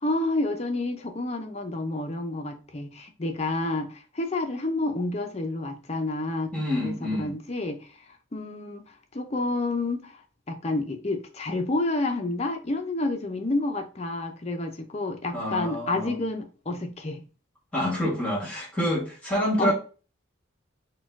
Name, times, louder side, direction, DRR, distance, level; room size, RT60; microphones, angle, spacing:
voice 1, 0.0-6.5 6.8-7.9 8.3-10.2 10.5-17.2 19.6-19.7, left 2 dB, 30° left, 0.5 m, -29 dB
voice 2, 6.5-7.3 15.3-16.1 17.7-19.7, equal, 5° left, 1.6 m, -27 dB
4.2 x 2.3 x 4.6 m
head